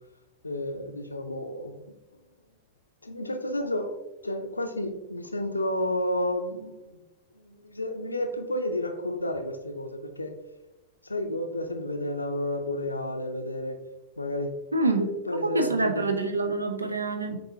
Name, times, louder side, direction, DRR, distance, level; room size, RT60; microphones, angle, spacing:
voice 1, 0.4-1.8 3.0-4.0 4.2-7.0 7.4-10.4 11.0-13.8 14.2-14.5 15.0-16.2, left 1 dB, 80° left, 6 dB, 0.5 m, -31 dB
voice 2, 14.7-15.1 15.4-17.4, right 3 dB, 80° right, 6 dB, 0.5 m, -26 dB
7.1 x 2.7 x 2.7 m, 0.98 s
figure-of-eight pair, 90°, 0 cm